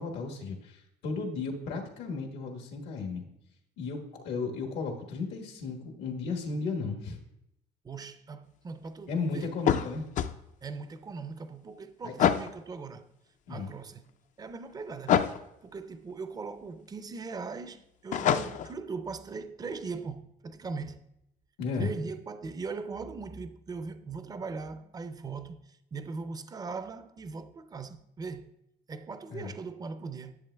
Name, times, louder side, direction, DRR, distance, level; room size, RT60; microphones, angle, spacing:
voice 1, 0.0-3.2 3.8-7.2 9.1-10.0 12.0-12.1 13.5-13.7 21.6-21.9 29.3-29.5, left 4 dB, 85° left, 1.4 m, -34 dB
voice 2, 7.8-9.5 10.6-13.1 13.5-14.1 14.4-15.2 15.6-21.0 21.8-28.5 28.9-30.4, right 4 dB, 20° right, 0.4 m, -40 dB
sound 1, 9.6-10.3 12.2-12.5 15.1-15.4 18.1-18.7, left 9 dB, 50° left, 0.4 m, -25 dB
10.5 x 7.6 x 2.2 m
cardioid pair, 110°, 17 cm